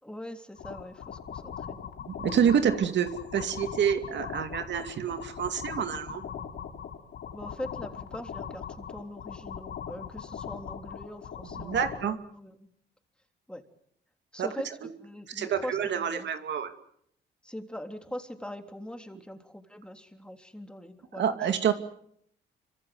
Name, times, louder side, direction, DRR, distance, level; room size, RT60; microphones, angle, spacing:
voice 1, 0.0-1.8 7.3-12.7 13.5-13.6 14.3-14.7 15.0-16.3 17.4-21.5, left 1 dB, 5° left, 5 dB, 3.5 m, -42 dB
sound 1, 0.6-12.1, left 7 dB, 65° left, 3.6 m, -40 dB
voice 2, 2.1-6.2 11.6-12.2 14.4-14.5 15.3-16.7 21.2-21.7, right 8 dB, 65° right, 8 dB, 2.5 m, -27 dB
27.0 x 25.0 x 7.9 m, 0.70 s
cardioid pair, 90°, 20 cm